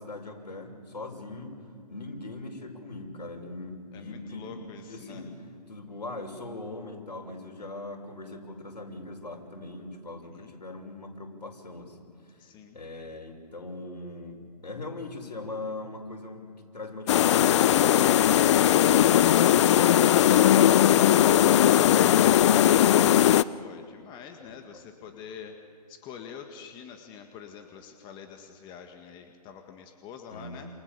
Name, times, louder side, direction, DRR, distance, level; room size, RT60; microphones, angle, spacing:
voice 1, 0.0-1.6 1.9-5.3 5.7-12.4 12.7-18.3 24.4-24.6 25.0-25.1 30.3-30.7, left 2 dB, 85° left, 2 dB, 6.2 m, -41 dB
voice 2, 3.9-5.2 10.2-10.5 12.4-12.8 23.5-25.6 25.9-30.7, left 7 dB, 20° left, 5 dB, 1.9 m, -45 dB
sound 1, 17.1-23.4, left 11 dB, 45° left, 0.6 m, -19 dB
28.5 x 28.5 x 7.0 m, 2.2 s
hypercardioid pair, 140°, 21 cm